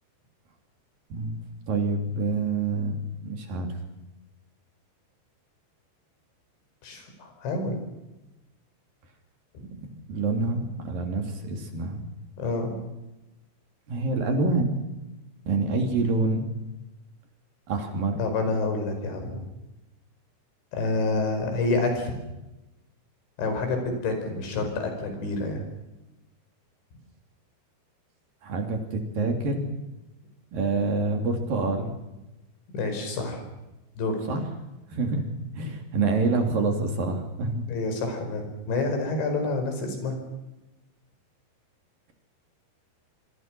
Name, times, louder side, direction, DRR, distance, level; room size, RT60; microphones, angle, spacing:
voice 1, 1.1-3.0 3.2-3.7 9.6-9.7 10.1-12.0 13.9-14.7 15.5-16.4 17.7-18.2 28.4-29.6 30.5-31.9 34.3-34.4 34.9-35.3 35.6-37.7, right 3 dB, 55° right, 4 dB, 4.6 m, -26 dB
voice 2, 6.8-7.8 9.5-9.6 12.4-12.8 18.2-19.4 20.7-22.3 23.4-25.6 32.7-33.4 34.0-34.2 37.7-40.2, left 3 dB, 90° left, 5 dB, 7.4 m, -28 dB
27.0 x 24.0 x 6.2 m, 0.98 s
omnidirectional pair, 5.1 m